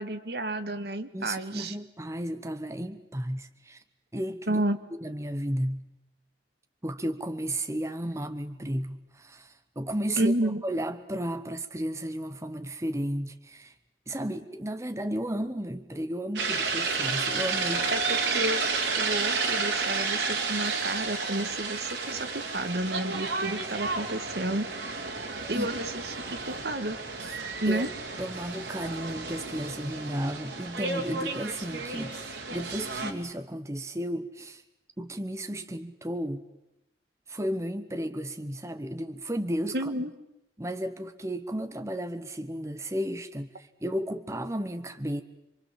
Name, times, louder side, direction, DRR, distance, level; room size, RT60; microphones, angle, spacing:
voice 1, 0.0-1.7 4.5-4.8 10.2-10.6 17.9-18.6 19.0-24.7 25.5-27.0 27.6-27.9 39.7-40.1, right 1 dB, 65° right, 9 dB, 1.6 m, -31 dB
voice 2, 1.1-3.8 4.1-4.6 4.9-5.9 6.8-13.7 14.1-17.9 25.5-25.7 27.2-27.4 27.6-27.9 28.2-34.6 35.0-36.4 37.3-39.9 40.6-45.2, right 1 dB, 15° right, 8 dB, 1.0 m, -33 dB
sound 1, 16.4-33.1, right 4 dB, 85° right, 3.0 m, -31 dB
27.5 x 23.5 x 7.5 m, 0.90 s
head